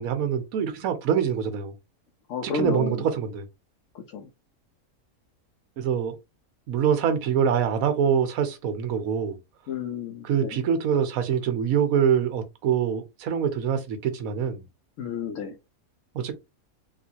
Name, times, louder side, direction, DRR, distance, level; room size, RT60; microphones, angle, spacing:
voice 1, 0.0-1.7 2.4-3.5 5.8-6.2 6.7-9.4 10.2-14.7 16.1-16.3, right 8 dB, 75° right, 1.1 m, -25 dB
voice 2, 2.3-3.0 4.1-4.3 9.7-10.6 15.0-15.5, left 5 dB, 70° left, 1.0 m, -31 dB
3.7 x 2.4 x 2.7 m
omnidirectional pair, 1.5 m